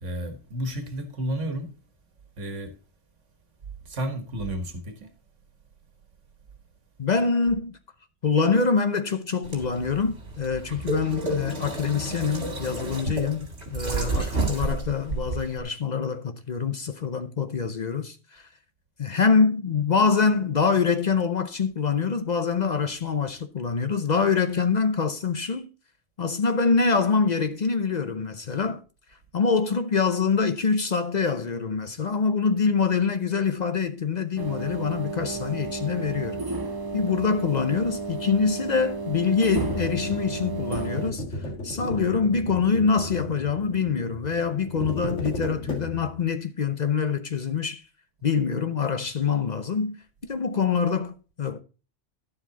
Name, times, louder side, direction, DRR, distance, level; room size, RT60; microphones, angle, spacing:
voice 1, 0.0-1.7 2.4-2.7 3.8-5.1, right 1 dB, 85° right, 1.8 m, -32 dB
voice 2, 7.0-7.7 8.2-18.5 19.0-25.7 26.2-28.8 29.3-36.4 36.9-47.8 48.2-51.6, left 5 dB, 45° left, 0.7 m, -25 dB
sound 1, 9.4-15.6, right 3 dB, 60° right, 2.7 m, -31 dB
sound 2, 34.4-41.1, right 3 dB, 25° right, 0.6 m, -32 dB
sound 3, 39.6-46.3, left 1 dB, 75° left, 2.3 m, -35 dB
11.0 x 7.5 x 4.0 m
omnidirectional pair, 1.2 m